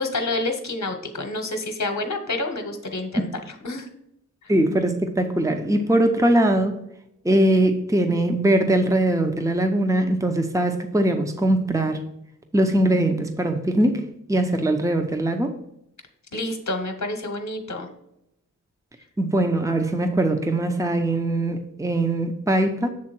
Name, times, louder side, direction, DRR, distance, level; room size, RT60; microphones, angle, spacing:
voice 1, 0.0-3.3 3.6-3.9 4.4-4.5 16.3-17.9, left 2 dB, 60° left, 4 dB, 1.0 m, -28 dB
voice 2, 4.5-6.8 7.2-12.0 12.5-15.5 19.2-22.9, right 1 dB, 10° right, 5 dB, 0.8 m, -21 dB
7.5 x 3.7 x 6.0 m, 0.80 s
wide cardioid pair, 60°, 31 cm